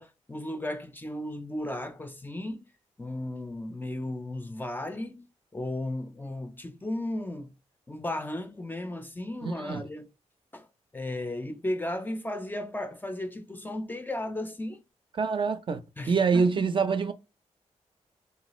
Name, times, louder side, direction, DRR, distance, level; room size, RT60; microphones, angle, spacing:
voice 1, 0.0-2.7 3.0-7.5 7.9-10.1 10.5-10.7 10.9-14.8 16.0-16.6, left 1 dB, 15° left, 0.4 m, -35 dB
voice 2, 9.4-9.8 15.2-15.8 16.1-17.1, right 5 dB, 45° right, 0.5 m, -25 dB
3.1 x 2.3 x 3.0 m
wide cardioid pair, 95°, 12 cm